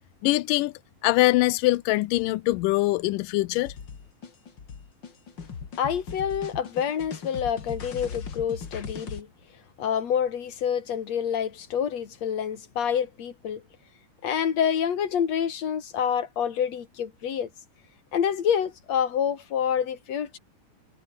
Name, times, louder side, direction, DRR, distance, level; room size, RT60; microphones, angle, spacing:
voice 1, 0.2-0.7 1.0-3.7, left 19 dB, 90° left, 2.3 m, -23 dB
sound 1, 3.7-9.2, left 6 dB, 35° left, 2.5 m, -39 dB
voice 2, 5.8-9.3 9.8-13.6 14.2-17.5 18.1-20.4, left 8 dB, 55° left, 3.5 m, -27 dB
omnidirectional pair, 3.8 m